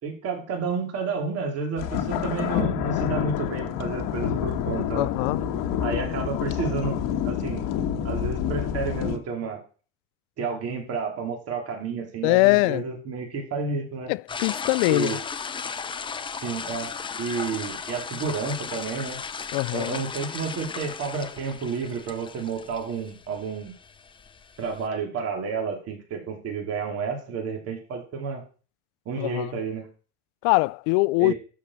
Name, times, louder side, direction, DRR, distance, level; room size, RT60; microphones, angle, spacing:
voice 1, 0.0-5.1 5.8-7.0 7.2-7.7 8.0-9.6 10.4-14.1 14.9-15.2 16.4-19.2 19.7-23.7 24.6-28.4 29.0-29.9 31.2-31.3, right 5 dB, 40° right, 3.1 m, -31 dB
sound 1, 1.8-9.2, left 9 dB, 60° left, 1.5 m, -28 dB
voice 2, 5.0-5.4 12.2-12.8 14.1-15.2 19.5-20.0 29.2-29.5 30.4-31.3, left 25 dB, 75° left, 0.5 m, -22 dB
sound 2, 14.3-24.9, left 6 dB, 15° left, 0.6 m, -36 dB
12.5 x 5.0 x 7.2 m
cardioid pair, 155°, 38 cm